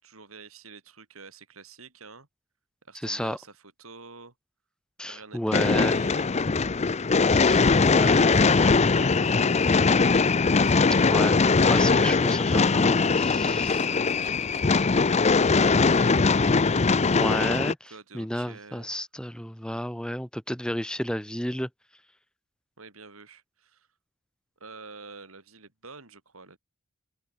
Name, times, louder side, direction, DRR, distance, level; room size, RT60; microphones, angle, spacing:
voice 1, 0.0-2.3 2.9-4.3 5.0-6.3 7.8-11.0 13.3-16.4 17.9-18.9 22.8-23.9 24.6-26.6, right 4 dB, 75° right, 3.9 m, -48 dB
voice 2, 3.0-3.4 5.0-6.0 7.3-8.7 11.1-11.4 11.7-13.8 17.1-21.7, equal, 5° left, 1.7 m, -32 dB
sound 1, 5.5-17.7, left 4 dB, 30° left, 0.6 m, -21 dB
open air
head